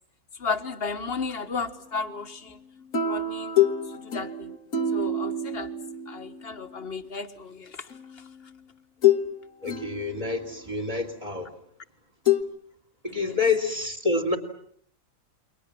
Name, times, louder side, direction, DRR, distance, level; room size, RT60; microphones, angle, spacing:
voice 1, 0.4-2.6 3.0-3.5 4.0-4.5 4.9-5.7 6.1-7.8 13.2-13.4, left 4 dB, 45° left, 9 dB, 1.7 m, -33 dB
sound 1, 2.9-6.5 7.9-8.0 9.0-9.3 9.7-10.5 12.3-12.4, left 6 dB, 80° left, 1.8 m, -26 dB
voice 2, 9.6-11.6 13.0-14.4, left 3 dB, 25° right, 6 dB, 2.9 m, -27 dB
30.0 x 23.0 x 7.7 m, 0.63 s
omnidirectional pair, 1.4 m